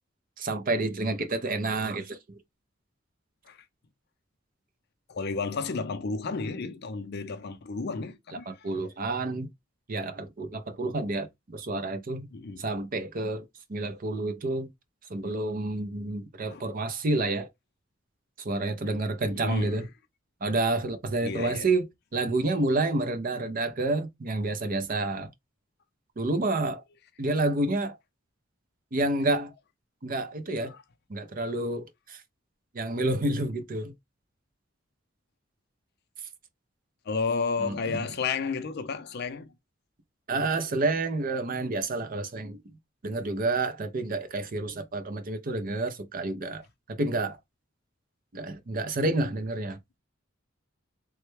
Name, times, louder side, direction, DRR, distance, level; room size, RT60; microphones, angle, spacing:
voice 1, 0.4-2.4 8.5-9.5 9.9-12.3 12.6-13.4 13.7-14.7 15.1-17.5 18.4-19.9 20.4-21.9 22.1-25.3 26.2-26.8 27.2-28.0 28.9-29.5 30.0-30.7 31.1-32.2 32.7-33.9 37.6-38.1 40.3-42.6 43.0-46.6 46.9-47.4 48.3-49.8, right 2 dB, 45° right, 0.6 m, -29 dB
voice 2, 5.1-8.7 12.3-12.7 16.5-16.7 19.3-19.9 21.2-21.7 30.7-30.8 37.1-39.5, left 4 dB, 55° left, 0.5 m, -32 dB
3.2 x 2.1 x 3.1 m
head